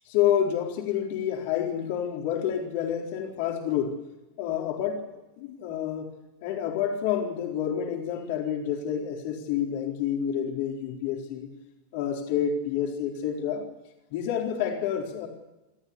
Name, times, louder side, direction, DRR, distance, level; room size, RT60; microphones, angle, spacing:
voice 1, 0.1-4.0 4.4-6.1 6.4-11.5 11.9-13.7 14.1-15.3, left 9 dB, 50° left, 2 dB, 4.1 m, -28 dB
28.0 x 14.0 x 8.4 m, 1.0 s
figure-of-eight pair, 90°, 0 cm